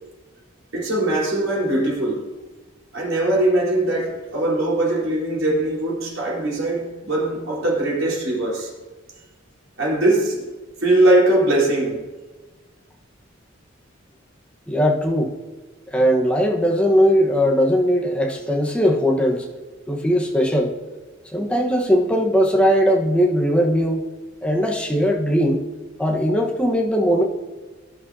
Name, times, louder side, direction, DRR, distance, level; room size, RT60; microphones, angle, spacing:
voice 1, 0.7-2.3 2.9-8.7 9.8-10.4 10.8-12.0, right 1 dB, 85° right, -4 dB, 4.3 m, -21 dB
voice 2, 14.7-15.4 15.9-19.5 19.9-20.7 21.3-24.0 24.4-25.6 26.0-27.2, equal, 5° left, 0 dB, 1.2 m, -19 dB
17.0 x 11.5 x 2.8 m, 1.3 s
head